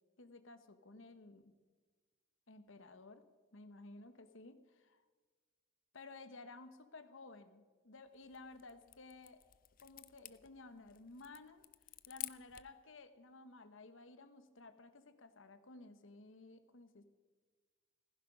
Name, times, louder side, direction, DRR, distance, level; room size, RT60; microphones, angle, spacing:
voice 1, 0.2-1.5 2.5-3.2 3.5-5.0 5.9-9.4 9.8-11.6 12.1-17.0, left 3 dB, 70° left, 11 dB, 1.1 m, -55 dB
sound 1, 8.1-12.8, left 16 dB, 40° left, 0.5 m, -51 dB
15.5 x 15.5 x 5.3 m, 1.4 s
head